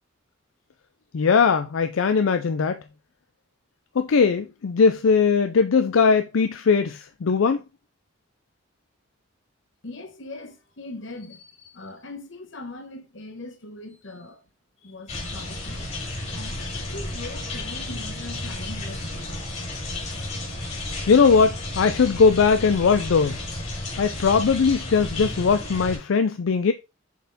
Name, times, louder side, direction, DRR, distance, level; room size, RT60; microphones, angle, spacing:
voice 1, 1.1-2.8 4.0-7.6 21.1-23.4 24.0-26.7, left 5 dB, 85° left, 0.5 m, -20 dB
voice 2, 9.8-14.5 14.8-15.9 16.3-19.4, left 2 dB, 65° left, 1.3 m, -40 dB
sound 1, 15.1-26.0, left 2 dB, 35° left, 2.5 m, -32 dB
7.1 x 4.3 x 4.1 m
head